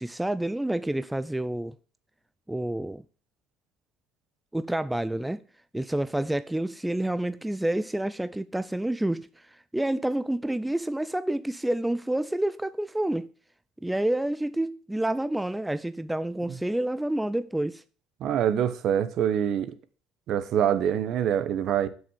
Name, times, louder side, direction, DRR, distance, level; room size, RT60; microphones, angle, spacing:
voice 1, 0.0-1.7 2.5-3.0 4.5-5.4 5.7-13.3 13.8-17.8, right 1 dB, 5° right, 0.4 m, -28 dB
voice 2, 18.2-19.7 20.3-21.9, right 9 dB, 60° right, 1.0 m, -25 dB
7.7 x 6.5 x 7.4 m
cardioid pair, 105°, 0 cm